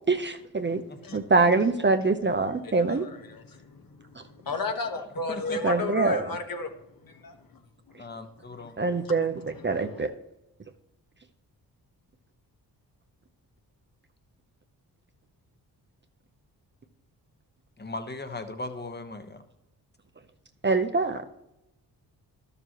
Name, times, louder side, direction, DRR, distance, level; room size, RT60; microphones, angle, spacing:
voice 1, 0.1-0.8 1.1-3.1 5.6-6.4 8.8-10.1 20.6-21.2, right 3 dB, 25° right, 0.7 m, -24 dB
voice 2, 0.9-1.2 5.3-5.6 8.0-8.8 17.8-19.4, left 2 dB, 25° left, 1.2 m, -38 dB
voice 3, 2.6-6.7 7.0-7.6 7.9-8.0 8.6-9.0 9.6-10.0, left 3 dB, 55° left, 1.4 m, -34 dB
12.0 x 6.9 x 3.0 m
cardioid pair, 55°, 41 cm